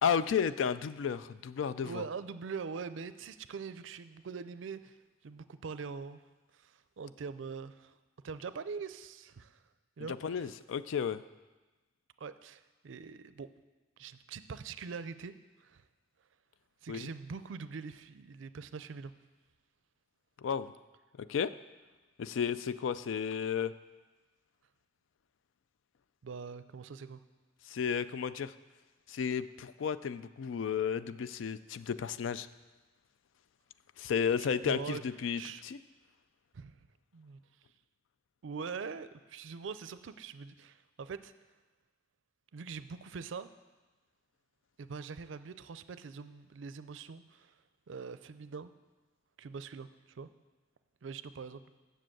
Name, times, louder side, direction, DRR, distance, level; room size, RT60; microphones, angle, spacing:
voice 1, 0.0-2.0 10.1-11.2 16.9-17.1 20.4-20.7 21.2-21.5 22.2-23.7 27.7-28.5 29.1-32.5 34.0-35.8, left 7 dB, 75° left, 14 dB, 0.4 m, -33 dB
voice 2, 1.8-5.0 5.2-6.2 6.5-7.9 8.2-9.6 10.0-10.5 12.2-13.5 14.0-15.8 16.8-19.1 26.2-27.2 34.4-35.0 35.4-35.6 36.5-36.8 37.1-37.4 38.4-41.3 42.5-43.5 44.8-47.6 47.9-48.7 49.4-50.3 51.0-51.6, right 5 dB, 75° right, 13 dB, 0.5 m, -43 dB
7.6 x 6.6 x 7.7 m, 1.2 s
head